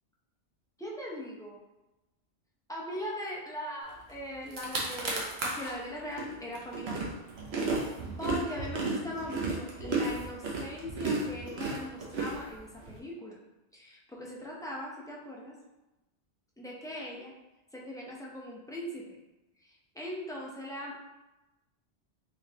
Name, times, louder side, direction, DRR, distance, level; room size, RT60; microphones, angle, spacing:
voice 1, 0.8-1.6 2.7-7.2 8.2-13.4 13.7-15.6 16.6-17.3 17.7-19.0 19.6-21.0, left 1 dB, 5° left, -4 dB, 0.3 m, -40 dB
sound 1, 4.1-4.2 4.4-5.7 6.2-12.9, right 3 dB, 65° right, 1.0 m, -33 dB
3.8 x 3.3 x 2.8 m, 1.0 s
omnidirectional pair, 1.2 m